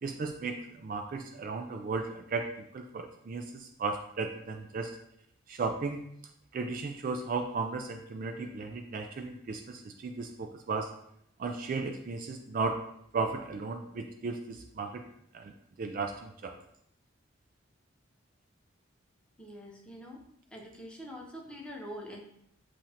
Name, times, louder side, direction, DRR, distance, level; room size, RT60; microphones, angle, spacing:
voice 1, 0.0-5.0 5.5-6.0 6.5-10.9 11.4-12.8 13.1-15.1 15.3-15.5 15.8-16.6, right 4 dB, 40° right, 5 dB, 0.3 m, -35 dB
voice 2, 19.4-20.2 20.5-22.2, equal, 5° left, -2 dB, 0.7 m, -44 dB
7.3 x 2.5 x 2.8 m, 0.72 s
head